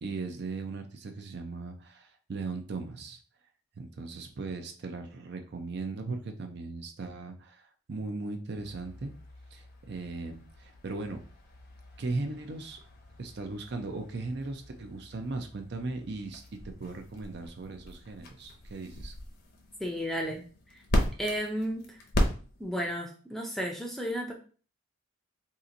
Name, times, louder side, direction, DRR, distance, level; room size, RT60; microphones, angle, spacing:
voice 1, 0.0-3.2 3.8-9.1 9.5-11.2 12.0-12.8 13.2-19.1, right 3 dB, 55° right, 6 dB, 0.5 m, -38 dB
sound 1, 8.6-22.9, left 1 dB, 50° left, 0.7 m, -37 dB
voice 2, 19.8-20.4 20.7-20.8 21.2-22.0 22.6-24.3, equal, ahead, 1 dB, 0.5 m, -33 dB
2.8 x 2.5 x 3.8 m, 0.39 s
head